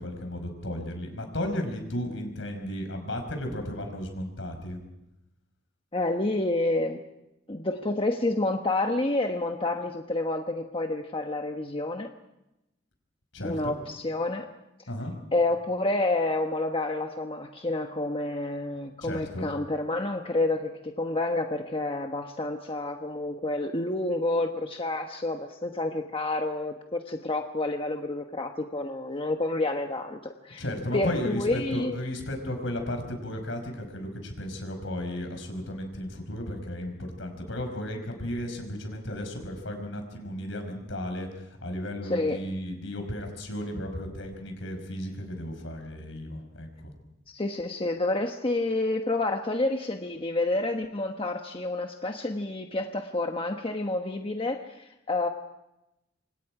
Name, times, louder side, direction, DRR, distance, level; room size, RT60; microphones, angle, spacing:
voice 1, 0.0-4.8 13.3-13.7 14.9-15.1 19.0-19.5 30.6-46.9, left 1 dB, 70° left, 5 dB, 5.3 m, -34 dB
voice 2, 5.9-7.0 7.5-12.1 13.4-14.5 15.3-30.6 30.9-31.9 42.0-42.4 47.3-55.3, left 2 dB, 25° left, 4 dB, 1.2 m, -29 dB
27.0 x 25.5 x 4.9 m, 0.90 s
head